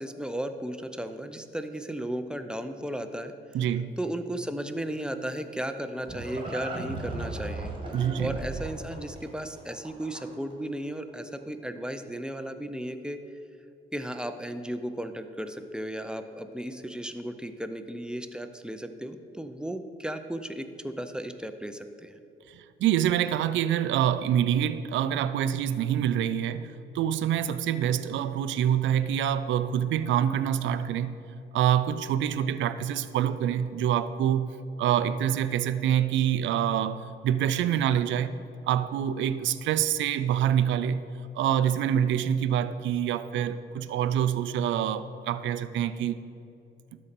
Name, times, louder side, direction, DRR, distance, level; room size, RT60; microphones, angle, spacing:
voice 1, 0.0-3.3 4.0-13.2 13.9-22.2, right 1 dB, 5° right, 8 dB, 0.5 m, -35 dB
voice 2, 3.5-3.9 7.9-8.4 22.5-31.1 31.5-34.5 34.8-38.3 38.7-41.0 41.3-46.2, right 10 dB, 70° right, 13 dB, 0.4 m, -26 dB
Livestock farm animals working animals, 5.4-10.5, right 2 dB, 25° right, 1.8 m, -37 dB
12.5 x 4.2 x 4.2 m, 2.7 s
cardioid pair, 90°, 20 cm